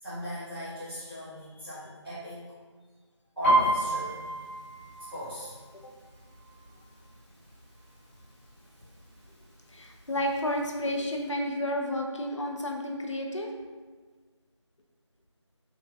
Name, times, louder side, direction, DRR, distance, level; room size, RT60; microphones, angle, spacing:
voice 1, 0.0-2.4 3.4-4.3 5.1-5.5 8.8-8.9, equal, 50° right, -14 dB, 1.2 m, -39 dB
Piano, 3.4-7.1 7.4-7.8 8.2-8.8 9.4-9.5 9.7-10.8 11.1-11.2, right 1 dB, 25° left, 1.3 m, -29 dB
voice 2, 9.7-13.5, left 1 dB, 80° left, 1 dB, 0.5 m, -31 dB
3.8 x 2.4 x 2.3 m, 1.4 s
figure-of-eight pair, 170°, 16 cm